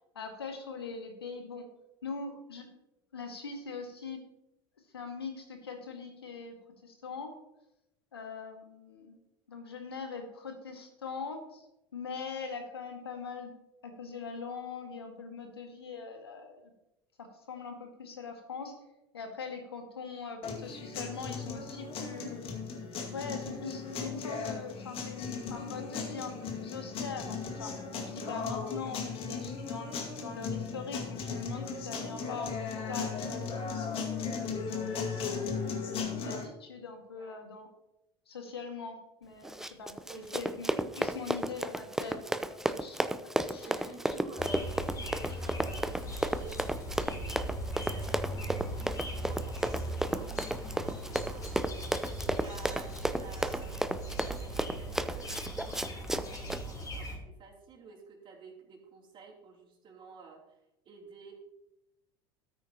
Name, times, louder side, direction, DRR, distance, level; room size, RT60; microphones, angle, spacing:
voice 1, 0.2-1.7 2.0-2.7 3.1-4.2 4.9-6.6 6.8-7.3 8.1-9.2 9.5-11.7 11.9-13.5 13.8-16.7 17.2-18.7 19.1-22.4 23.1-27.7 28.1-32.5 32.9-33.4 33.8-34.6 35.6-37.7 38.3-43.0 43.5-44.1 44.8-45.0 45.3-45.4, left 5 dB, 90° left, 4 dB, 1.9 m, -42 dB
sound 1, 20.4-36.4, left 5 dB, 45° left, 2.1 m, -37 dB
voice 2, 28.2-28.6 35.2-35.4 37.1-37.4 40.1-40.4 42.6-43.0 43.6-53.7 54.2-60.6 60.8-61.3, right 4 dB, 40° right, 0 dB, 3.1 m, -51 dB
Run, 39.4-56.6, right 1 dB, 5° right, 0.6 m, -33 dB
sound 2, 44.4-57.2, right 1 dB, 30° left, 3.7 m, -39 dB
13.5 x 9.3 x 2.9 m, 0.90 s
hypercardioid pair, 75°, 13 cm